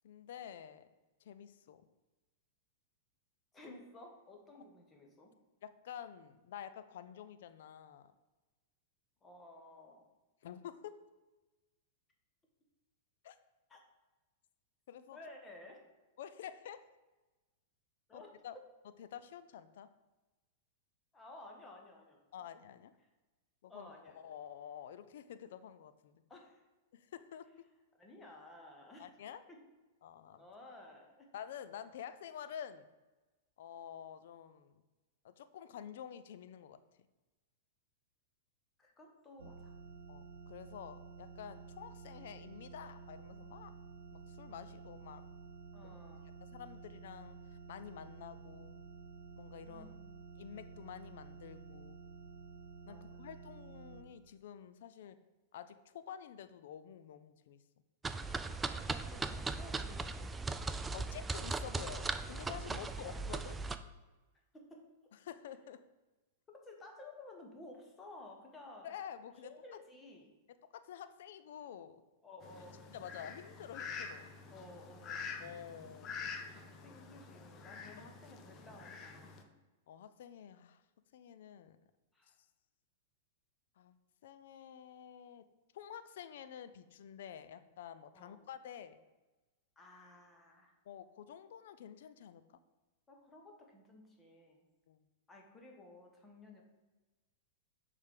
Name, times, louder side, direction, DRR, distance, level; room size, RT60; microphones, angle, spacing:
voice 1, 0.0-0.9 1.2-1.8 5.6-8.1 10.4-10.9 13.2-13.4 14.9-15.2 16.2-16.8 18.1-18.5 19.0-19.9 22.3-22.9 23.6-26.2 26.9-27.5 29.0-29.4 30.0-30.4 31.3-32.9 33.6-34.8 35.2-36.8 40.1-43.7 44.1-45.2 45.8-45.9 46.5-48.9 49.4-49.9 50.4-52.0 52.9-55.2 55.5-57.6 60.9-63.6 65.2-65.8 68.8-69.5 70.8-72.0 72.9-74.3 75.4-76.2 79.9-80.8 81.1-81.8 83.8-84.0 84.2-85.4 85.7-89.0 90.9-92.6 94.9-95.0, left 9 dB, 65° left, 12 dB, 0.4 m, -49 dB
voice 2, 3.5-5.3 9.2-10.0 13.7-13.8 15.1-15.8 18.1-18.3 21.1-22.4 23.7-24.2 26.3-26.6 28.0-29.1 29.5-29.6 30.4-31.3 38.8-39.7 45.7-46.3 49.6-50.0 52.8-53.2 58.7-60.3 62.7-63.2 64.5-64.8 66.5-68.9 69.4-70.3 72.2-72.8 74.5-75.3 76.8-79.3 82.1-82.3 88.1-88.5 89.8-90.7 93.1-94.7 95.3-96.6, left 2 dB, 15° left, 1 dB, 1.3 m, -54 dB
sound 1, 39.4-54.0, right 4 dB, 80° right, 1.0 m, -52 dB
sound 2, 58.0-63.8, right 3 dB, 15° right, 0.4 m, -38 dB
Fowl, 72.4-79.4, left 5 dB, 35° left, 0.8 m, -47 dB
6.4 x 3.6 x 5.1 m, 1.1 s
hypercardioid pair, 110°, 0 cm